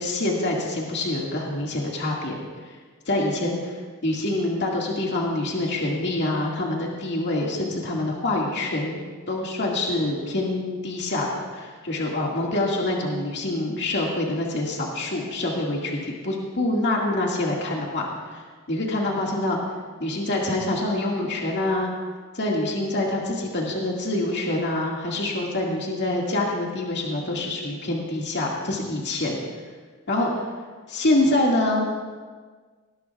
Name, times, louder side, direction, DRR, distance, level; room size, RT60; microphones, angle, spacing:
voice 1, 0.0-2.4 3.1-3.6 4.0-9.0 9.3-18.4 18.7-19.6 20.0-21.9 22.3-29.4 30.1-30.4 30.9-31.9, left 2 dB, 55° left, -2 dB, 2.1 m, -26 dB
19.5 x 17.5 x 2.4 m, 1.5 s
head